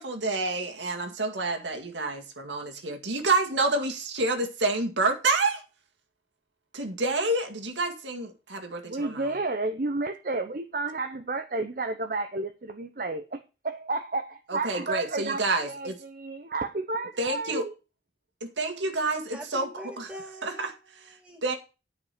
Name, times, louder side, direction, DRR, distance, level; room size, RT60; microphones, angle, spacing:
voice 1, 0.0-5.6 6.7-9.3 14.5-16.0 17.2-17.7 18.4-19.7 20.0-20.1 20.4-20.7 21.4-21.5, right 2 dB, 85° right, 1.9 m, -28 dB
voice 2, 8.9-17.7, right 3 dB, 50° right, 0.8 m, -31 dB
voice 3, 19.3-21.4, equal, 5° right, 2.9 m, -44 dB
9.9 x 5.4 x 6.7 m
head